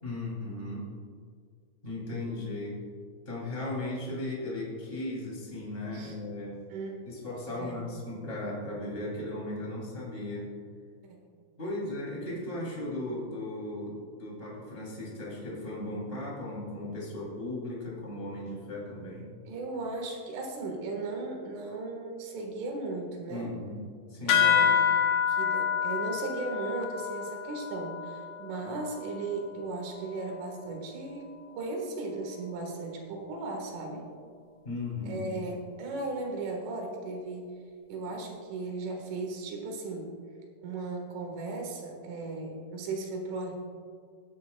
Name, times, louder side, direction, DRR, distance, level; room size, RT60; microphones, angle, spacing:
voice 1, 0.0-0.9 1.8-2.8 3.2-6.6 7.0-10.5 11.6-19.3 23.3-23.8 24.1-24.8 34.6-35.3, left 1 dB, 15° left, -4 dB, 2.3 m, -36 dB
voice 2, 6.7-7.0 7.6-7.9 11.0-11.2 19.5-23.5 24.3-24.7 25.3-34.1 35.1-37.5 37.9-40.1 40.6-43.5, right 3 dB, 75° right, 1 dB, 4.2 m, -36 dB
sound 1, 24.3-29.2, left 7 dB, 85° left, 2.2 m, -27 dB
19.5 x 9.9 x 2.3 m, 2.1 s
omnidirectional pair, 5.7 m